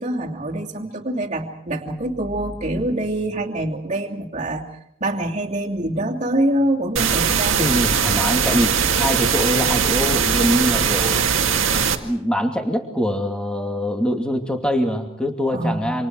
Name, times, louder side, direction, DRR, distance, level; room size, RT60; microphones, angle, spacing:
voice 1, 0.0-4.6 5.0-7.6 15.5-16.0, right 1 dB, 35° right, 0 dB, 2.8 m, -25 dB
sound 1, 7.0-12.0, right 6 dB, 65° right, 2.0 m, -20 dB
voice 2, 7.6-11.3 12.0-16.1, equal, 5° left, 3 dB, 2.6 m, -23 dB
28.0 x 26.5 x 4.7 m, 0.75 s
head